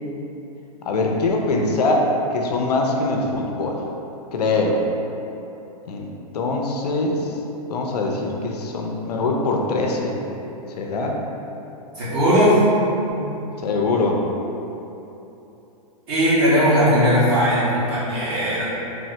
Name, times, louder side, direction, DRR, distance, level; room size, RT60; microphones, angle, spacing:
voice 1, 0.8-3.8 4.3-4.9 5.9-7.3 7.7-10.2 10.8-11.2 13.6-14.3, left 2 dB, 85° left, 1 dB, 0.5 m, -23 dB
voice 2, 11.9-12.6 13.1-13.2 16.1-18.6, equal, 40° right, -11 dB, 1.3 m, -18 dB
3.3 x 2.1 x 2.7 m, 3.0 s
hypercardioid pair, 140°, 20 cm